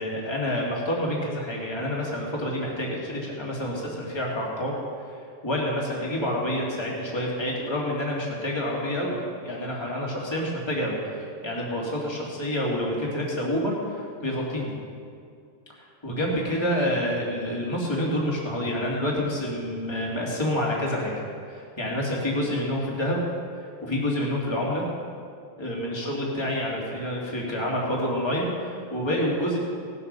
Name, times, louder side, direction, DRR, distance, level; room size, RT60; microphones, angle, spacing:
voice 1, 0.0-4.7 5.1-9.2 9.4-14.7 15.7-21.1 21.5-23.2 23.8-24.8 25.6-29.6, left 1 dB, 10° left, -3 dB, 2.1 m, -28 dB
18.0 x 7.1 x 5.4 m, 2.4 s
omnidirectional pair, 2.4 m